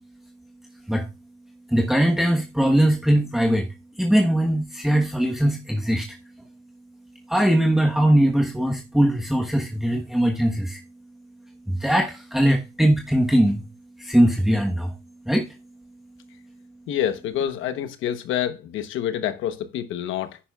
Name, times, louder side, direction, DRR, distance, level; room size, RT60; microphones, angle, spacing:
voice 1, 1.7-3.7 4.0-6.1 7.3-10.8 11.7-13.6 14.0-14.9 15.3-15.4, right 1 dB, ahead, 1.2 m, -20 dB
voice 2, 16.9-20.4, left 10 dB, 85° left, 1.0 m, -27 dB
10.0 x 9.8 x 2.4 m
cardioid pair, 90°, 20 cm